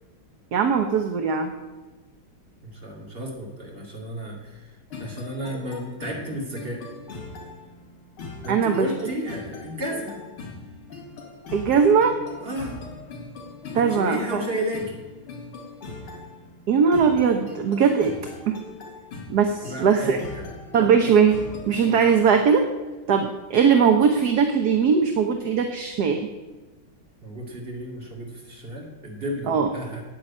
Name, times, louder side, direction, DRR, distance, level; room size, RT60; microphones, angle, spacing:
voice 1, 0.5-1.5 8.5-8.9 11.5-12.1 13.7-14.4 16.7-18.1 18.5-18.6 19.3-20.2 20.7-21.4 21.7-22.6 23.1-26.2 29.5-29.7, right 6 dB, 60° right, 6 dB, 1.2 m, -20 dB
voice 2, 2.6-4.7 5.0-6.8 8.4-10.2 12.4-12.8 13.7-14.9 19.6-20.5 27.2-30.0, equal, 25° right, 0 dB, 2.8 m, -33 dB
sound 1, 4.9-22.3, left 3 dB, 85° left, 3.8 m, -40 dB
9.8 x 8.7 x 8.7 m, 1.2 s
omnidirectional pair, 2.4 m